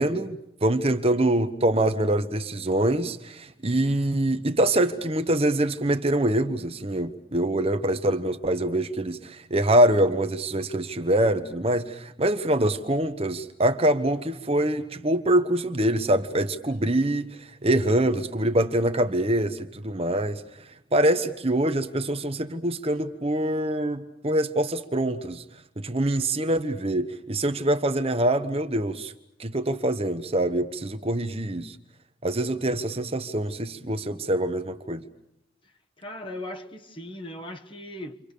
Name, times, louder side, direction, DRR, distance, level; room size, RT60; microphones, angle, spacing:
voice 1, 0.0-25.4 25.8-29.1 29.4-31.8 32.2-35.0, right 1 dB, 30° right, 1.2 m, -24 dB
voice 2, 36.0-38.2, left 1 dB, 25° left, 1.6 m, -38 dB
29.5 x 25.0 x 6.8 m
head